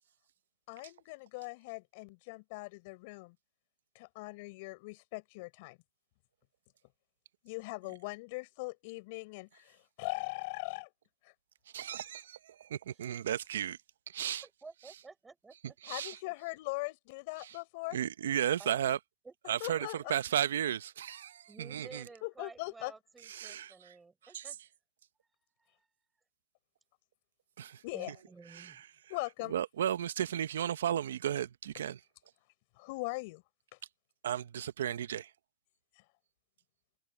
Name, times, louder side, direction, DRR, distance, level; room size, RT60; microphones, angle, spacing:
voice 1, 0.7-3.4 3.9-5.8 7.4-10.9 11.2-11.3 15.9-18.0 19.6-20.0 22.2-22.9 27.8-28.1 29.1-29.5 32.8-33.4, left 25 dB, 50° left, 4.3 m, -40 dB
voice 2, 11.7-13.8 14.1-14.4 15.8-16.2 17.4-17.5 17.9-19.0 19.5-22.0 23.3-23.7 24.3-24.4 27.6-27.8 28.5-28.7 29.5-32.0 34.2-35.3, right 10 dB, 85° right, 0.7 m, -34 dB
voice 3, 14.4-15.9 16.2-16.3 18.6-18.8 19.2-20.1 21.5-24.6 25.3-25.9 27.9-28.8, right 4 dB, 10° right, 5.3 m, -53 dB
supercardioid pair, 145°, 0 cm